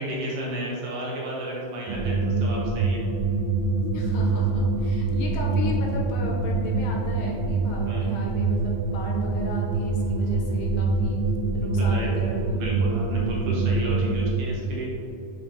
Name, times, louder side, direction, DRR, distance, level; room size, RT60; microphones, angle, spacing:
voice 1, 0.0-3.0 7.9-8.1 11.9-12.1 12.5-14.9, right 2 dB, 70° right, -4 dB, 2.2 m, -32 dB
sound 1, 1.9-14.4, right 3 dB, 85° right, 1.7 m, -25 dB
voice 2, 3.8-11.2 11.5-12.8, left 3 dB, 75° left, -1 dB, 2.4 m, -36 dB
7.5 x 5.1 x 2.8 m, 2.8 s
omnidirectional pair, 4.3 m